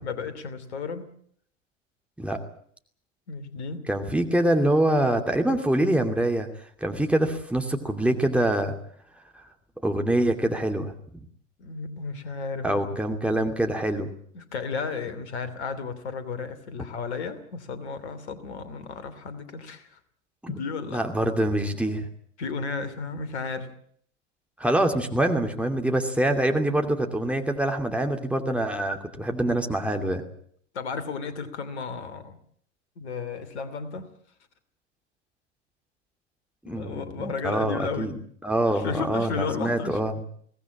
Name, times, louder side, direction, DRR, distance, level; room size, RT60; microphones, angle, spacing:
voice 1, 0.0-1.1 3.3-3.9 11.6-12.9 14.3-20.0 20.5-21.0 22.4-23.7 30.7-32.4 33.0-34.1 36.6-38.1 38.6-40.0, left 5 dB, 65° left, 13 dB, 2.9 m, -33 dB
voice 2, 3.9-6.5 6.8-8.7 9.8-10.9 12.6-14.1 20.4-20.5 20.9-22.1 24.6-30.2 36.6-37.1 37.4-38.1 38.4-40.1, right 1 dB, 5° right, 3 dB, 2.6 m, -25 dB
23.0 x 18.0 x 8.6 m, 0.63 s
figure-of-eight pair, 80°, 36 cm